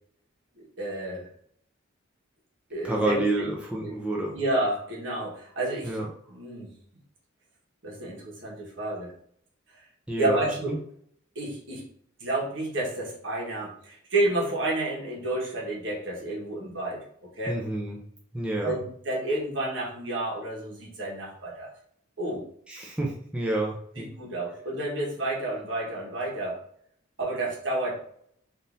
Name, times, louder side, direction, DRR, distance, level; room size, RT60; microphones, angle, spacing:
voice 1, 0.8-1.3 2.7-3.2 3.8-3.9 4.3-6.0 6.3-6.7 7.8-9.1 10.2-10.7 11.3-11.8 12.2-17.0 17.4-17.6 18.6-21.7 22.2-22.4 24.0-26.6 27.2-28.0, right 2 dB, 65° right, -3 dB, 1.2 m, -30 dB
voice 2, 2.8-4.4 5.8-6.1 10.1-10.8 17.5-18.0 18.3-18.8 22.7-24.1, right 2 dB, 5° right, -3 dB, 0.4 m, -29 dB
3.6 x 2.6 x 2.5 m, 0.65 s
head